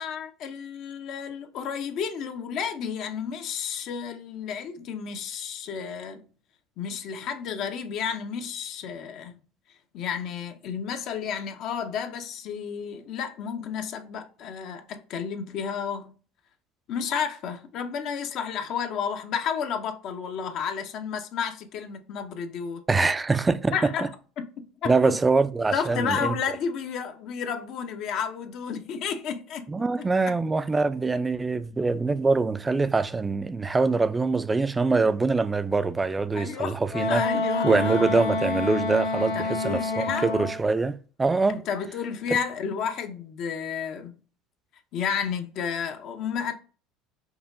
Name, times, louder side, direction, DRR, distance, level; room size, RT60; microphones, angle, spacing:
voice 1, 0.0-6.3 6.8-9.4 9.9-16.1 16.9-22.8 23.7-24.1 24.4-25.2 25.7-29.7 30.0-30.3 36.3-36.8 37.1-38.2 39.2-40.3 41.5-44.2 44.9-46.5, left 7 dB, 60° left, 0.5 m, -32 dB
voice 2, 22.9-23.8 24.9-26.3 29.7-37.2 37.6-41.6, right 3 dB, 20° right, 0.3 m, -24 dB
Wind instrument woodwind instrument, 36.9-40.6, left 3 dB, 85° left, 1.2 m, -27 dB
5.4 x 2.2 x 2.5 m
supercardioid pair, 90°, 0 cm